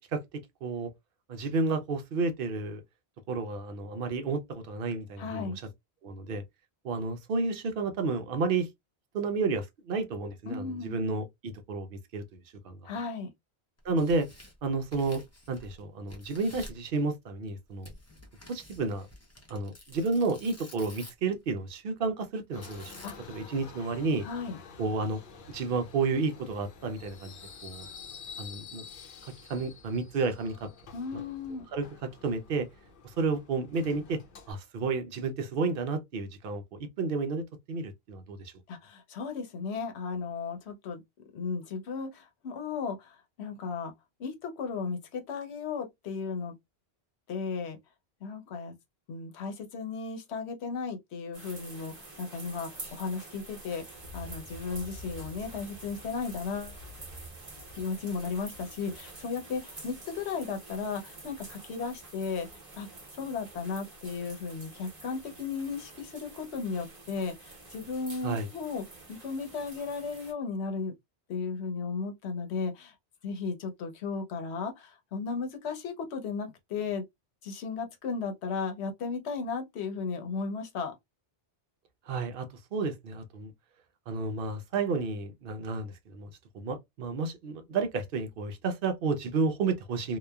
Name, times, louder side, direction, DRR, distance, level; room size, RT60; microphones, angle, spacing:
voice 1, 0.6-0.9 1.3-2.8 3.3-5.5 6.0-6.4 6.8-8.7 9.1-12.4 12.6-12.8 13.8-14.3 14.6-15.2 15.5-17.9 18.5-19.1 19.5-22.9 23.3-24.3 24.8-25.2 25.5-27.3 27.6-27.9 28.4-28.8 29.2-30.7 31.1-31.2 31.7-32.7 33.0-34.2 34.5-38.5 68.2-68.5 82.1-83.5 84.1-86.3 86.5-90.2, right 4 dB, 65° right, 0.7 m, -31 dB
voice 2, 5.2-5.6 10.5-11.0 12.8-13.3 23.0-23.5 24.2-24.6 30.9-31.6 38.7-41.0 41.3-43.9 44.2-46.5 47.3-47.8 48.2-48.7 49.1-56.8 57.7-68.8 69.1-70.9 71.3-72.9 73.2-77.0 77.4-80.9, left 5 dB, 80° left, 1.0 m, -35 dB
Tearing, 13.8-15.8 16.1-16.9 17.8-21.3 22.6-23.4, left 1 dB, 20° left, 0.5 m, -50 dB
Subway metro underground, 22.5-34.5, left 5 dB, 60° left, 0.7 m, -49 dB
sound 1, 51.3-70.3, right 2 dB, 40° right, 1.1 m, -47 dB
2.9 x 2.2 x 2.2 m
omnidirectional pair, 1.1 m